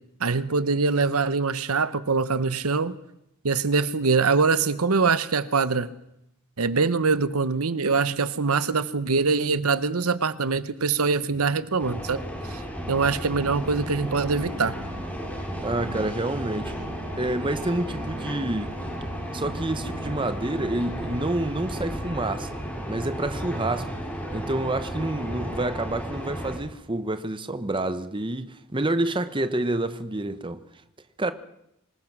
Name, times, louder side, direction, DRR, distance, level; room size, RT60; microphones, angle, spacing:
voice 1, 0.2-3.0 3.4-5.9 6.6-12.6 12.9-14.7, right 4 dB, 85° right, 1.0 m, -23 dB
sound 1, 11.8-26.6, equal, 5° left, 7.1 m, -34 dB
sound 2, 13.6-21.9, right 1 dB, 65° right, 2.1 m, -43 dB
voice 2, 15.6-16.7 17.2-18.8 19.3-22.6 22.9-24.0 24.3-30.6 31.2-31.3, right 2 dB, 25° right, 1.0 m, -28 dB
25.5 x 20.0 x 6.1 m
head